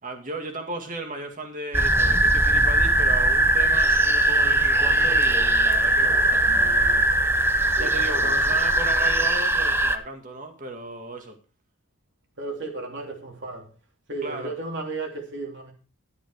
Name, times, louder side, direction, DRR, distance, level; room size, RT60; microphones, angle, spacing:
voice 1, 0.0-7.0 7.8-11.4 14.2-14.5, right 2 dB, 40° right, 2.1 m, -35 dB
sound 1, 1.7-10.0, right 2 dB, 10° right, 0.7 m, -20 dB
voice 2, 7.7-8.4 12.4-13.7 14.1-15.7, right 3 dB, 55° right, 2.9 m, -34 dB
12.5 x 8.0 x 4.7 m
head